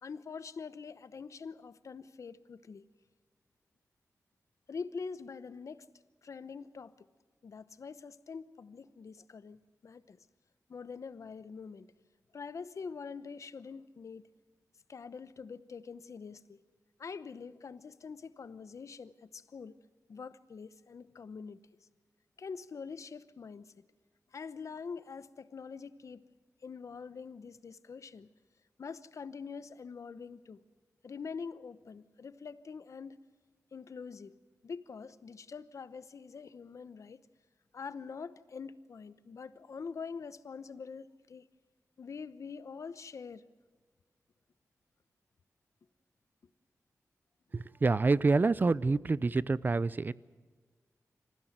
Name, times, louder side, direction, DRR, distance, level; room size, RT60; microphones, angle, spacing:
voice 1, 0.0-2.9 4.7-5.9 6.2-6.9 7.4-10.3 10.7-11.9 12.3-14.3 14.9-16.6 17.0-19.8 20.1-21.6 22.4-23.7 24.3-26.3 26.6-28.3 28.8-30.6 31.0-33.2 33.7-34.4 34.6-37.2 37.7-41.5 42.0-43.4, left 5 dB, 65° left, 0.9 m, -44 dB
voice 2, 47.5-50.1, right 3 dB, 35° right, 0.5 m, -27 dB
25.5 x 15.5 x 8.0 m
wide cardioid pair, 130°, 6 cm